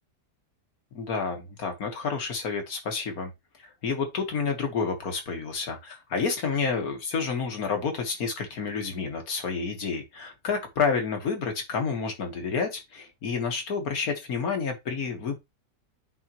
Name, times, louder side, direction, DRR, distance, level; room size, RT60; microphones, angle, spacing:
voice 1, 1.0-3.3 3.6-15.4, left 5 dB, 60° left, 1.9 m, -29 dB
10.0 x 3.8 x 3.0 m
omnidirectional pair, 1.8 m